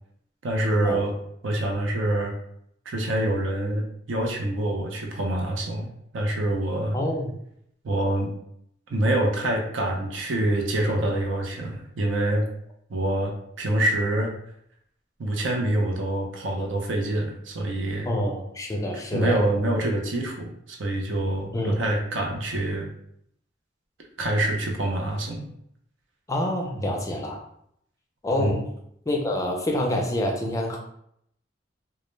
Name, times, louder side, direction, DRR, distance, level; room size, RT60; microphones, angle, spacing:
voice 1, 0.4-1.1 1.4-2.3 2.9-7.0 7.8-8.3 8.9-12.5 12.9-14.3 15.2-18.1 19.1-22.9 24.2-25.5 26.8-27.0 28.4-28.6, right 1 dB, 90° right, 1 dB, 0.6 m, -26 dB
voice 2, 6.9-7.3 18.1-19.4 21.5-21.8 26.3-27.4 28.2-28.6 29.1-30.8, left 1 dB, 15° left, 0 dB, 0.4 m, -27 dB
2.2 x 2.0 x 3.1 m, 0.72 s
head